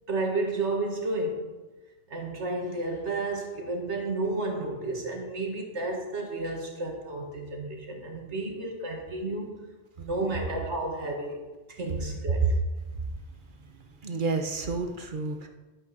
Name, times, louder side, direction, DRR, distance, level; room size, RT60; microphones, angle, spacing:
voice 1, 0.1-1.5 2.1-9.6 10.0-12.5, right 2 dB, 75° right, 2 dB, 2.0 m, -32 dB
voice 2, 14.0-15.5, right 3 dB, 45° right, 4 dB, 1.1 m, -31 dB
11.5 x 8.7 x 4.1 m, 1.2 s
omnidirectional pair, 1.2 m